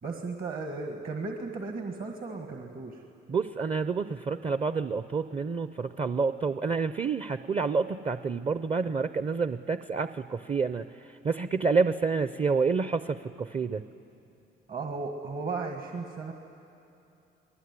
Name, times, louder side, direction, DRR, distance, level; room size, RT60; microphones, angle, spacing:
voice 1, 0.0-3.0 14.7-16.3, right 3 dB, 50° right, 3 dB, 1.8 m, -35 dB
voice 2, 3.3-13.8, right 4 dB, 30° right, 12 dB, 0.7 m, -28 dB
28.0 x 19.5 x 9.7 m, 2.8 s
cardioid pair, 90°, 20 cm